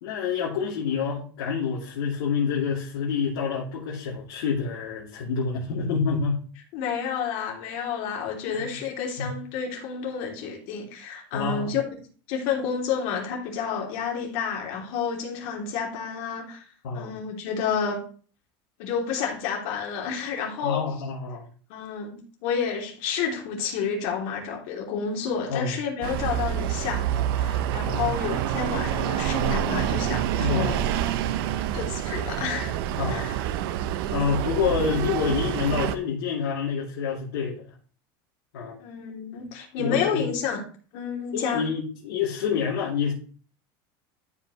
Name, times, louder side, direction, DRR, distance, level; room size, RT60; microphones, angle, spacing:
voice 1, 0.0-6.4 8.5-8.8 9.2-9.3 11.3-11.8 16.8-17.2 20.6-21.4 25.5-25.8 27.9-28.1 30.4-30.7 33.0-33.3 34.1-37.6 38.5-38.8 39.8-40.3 41.3-43.1, left 6 dB, 85° left, 3.1 m, -27 dB
voice 2, 6.7-11.8 12.3-16.7 16.9-18.0 18.8-20.8 21.7-30.8 31.7-32.8 33.1-33.4 38.8-40.6 40.9-41.6, left 6 dB, 65° left, 3.1 m, -30 dB
sound 1, 26.0-36.0, right 11 dB, 75° right, 0.7 m, -27 dB
13.0 x 5.6 x 3.2 m
supercardioid pair, 115°, 12 cm